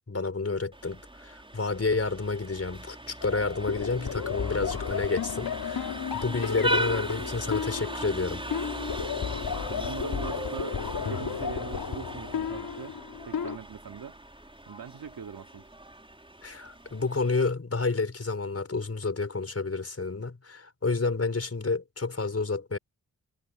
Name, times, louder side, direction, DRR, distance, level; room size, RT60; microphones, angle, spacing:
voice 1, 0.1-8.4 16.4-22.8, left 3 dB, 40° left, 4.7 m, -30 dB
Vehicle horn car horn honking, 0.7-17.5, right 1 dB, 15° right, 5.0 m, -38 dB
sound 1, 3.2-13.6, left 7 dB, 70° left, 3.5 m, -33 dB
voice 2, 9.7-13.0 13.2-15.7, right 7 dB, 75° right, 2.4 m, -42 dB
supercardioid pair, 40°, 36 cm